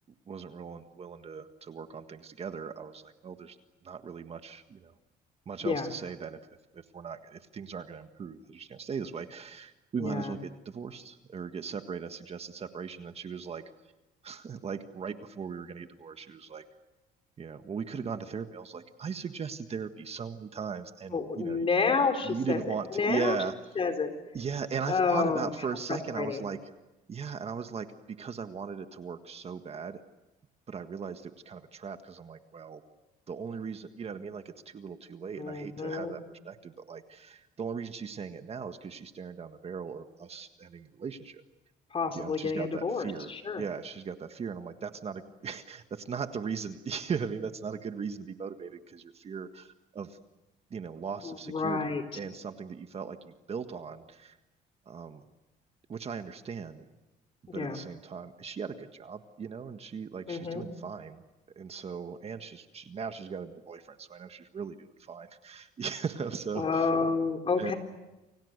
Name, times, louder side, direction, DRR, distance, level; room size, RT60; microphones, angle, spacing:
voice 1, 0.3-3.6 3.8-4.9 5.4-6.4 6.7-13.7 14.2-16.6 17.4-21.7 22.2-23.5 24.3-26.6 27.1-30.0 30.7-32.8 33.3-41.4 42.1-43.3 43.6-50.2 50.7-54.4 54.8-55.2 55.9-56.8 57.5-61.2 61.5-66.9 67.6-67.7, right 6 dB, 35° right, 8 dB, 1.7 m, -38 dB
voice 2, 10.0-10.3 21.1-22.6 23.0-23.4 23.8-24.1 24.9-25.5 25.9-26.4 35.4-36.1 41.9-43.6 51.2-52.0 57.5-57.8 60.3-60.6 66.6-67.8, left 4 dB, 35° left, 6 dB, 4.2 m, -29 dB
29.5 x 25.5 x 6.7 m, 1.0 s
cardioid pair, 110°, 17 cm